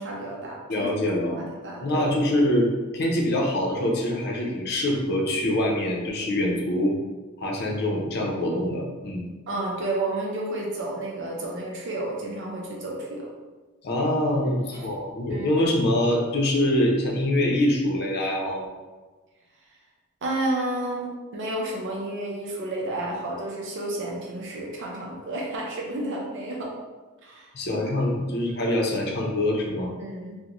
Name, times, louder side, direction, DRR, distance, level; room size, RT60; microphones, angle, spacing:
voice 1, 0.0-0.9 1.4-2.1 9.5-13.3 14.5-14.9 15.3-15.6 20.2-26.7 27.2-27.5 30.0-30.4, right 1 dB, 60° right, -2 dB, 0.5 m, -31 dB
voice 2, 0.7-1.4 1.8-2.7 2.9-6.9 7.4-9.3 13.8-18.6 27.5-29.9, left 1 dB, 50° left, -1 dB, 0.6 m, -24 dB
3.8 x 2.1 x 2.9 m, 1.3 s
head